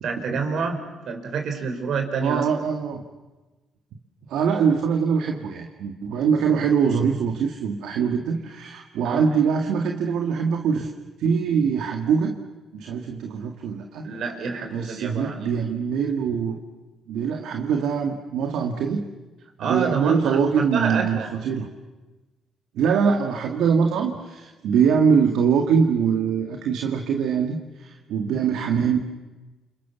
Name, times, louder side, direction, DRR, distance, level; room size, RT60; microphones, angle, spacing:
voice 1, 0.0-2.5 9.0-9.4 14.0-15.5 19.6-21.3, right 5 dB, 70° right, 5 dB, 5.6 m, -28 dB
voice 2, 2.2-3.0 4.3-10.9 11.2-12.3 12.7-14.1 14.7-16.6 17.1-19.0 19.6-21.7 22.7-29.0, right 6 dB, 85° right, 3 dB, 2.1 m, -23 dB
29.0 x 28.0 x 7.3 m, 1.2 s
cardioid pair, 90°, 0 cm